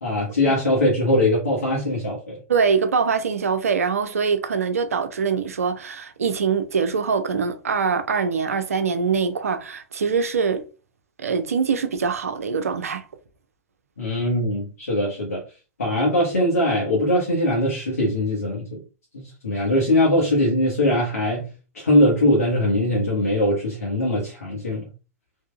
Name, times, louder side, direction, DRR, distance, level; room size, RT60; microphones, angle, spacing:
voice 1, 0.0-2.4 14.0-15.4 15.8-18.8 19.1-21.5 21.7-24.9, left 1 dB, 75° left, 1.3 m, -21 dB
voice 2, 2.5-10.6 11.2-13.1, right 5 dB, 70° right, 0.5 m, -23 dB
3.6 x 2.7 x 2.3 m
figure-of-eight pair, 100°, 8 cm